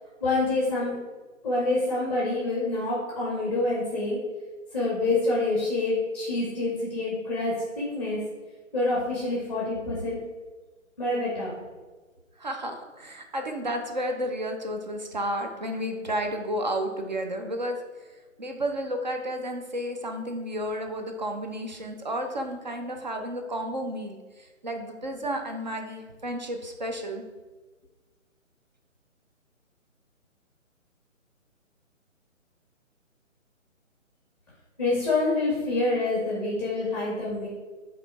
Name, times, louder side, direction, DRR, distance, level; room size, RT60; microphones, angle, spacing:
voice 1, 0.2-1.0 1.4-4.2 4.7-8.2 8.7-10.2 11.0-11.5 34.8-37.5, left 2 dB, 5° left, -6 dB, 0.7 m, -27 dB
voice 2, 12.4-17.8 18.4-27.2, equal, 35° right, 4 dB, 0.6 m, -32 dB
7.7 x 3.0 x 4.7 m, 1.3 s
figure-of-eight pair, 150°, 40 cm